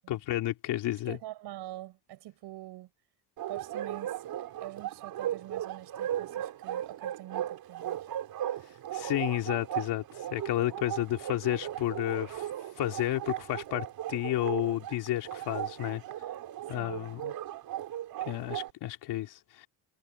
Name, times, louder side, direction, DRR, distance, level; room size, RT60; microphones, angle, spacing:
voice 1, 0.1-1.2 8.9-10.0 10.3-12.5 12.8-16.0 16.7-17.3 18.2-19.7, left 14 dB, 75° left, 3.3 m, -31 dB
voice 2, 1.1-2.9 3.5-8.1 10.6-10.8 16.6-17.2, right 15 dB, 80° right, 5.5 m, -45 dB
Bark, 3.4-18.7, right 12 dB, 60° right, 4.3 m, -37 dB
cardioid pair, 175°, 40 cm